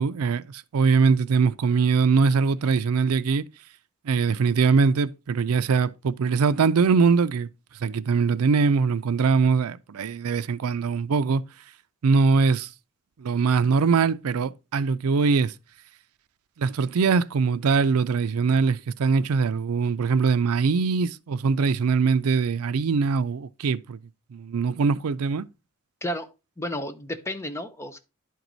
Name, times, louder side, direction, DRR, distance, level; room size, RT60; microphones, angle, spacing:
voice 1, 0.0-3.4 4.0-7.5 7.8-11.4 12.0-12.7 13.2-15.5 16.6-24.0 24.3-25.5, right 5 dB, 80° right, 0.4 m, -22 dB
voice 2, 26.6-28.0, left 1 dB, 10° left, 0.7 m, -32 dB
11.0 x 4.7 x 3.9 m
head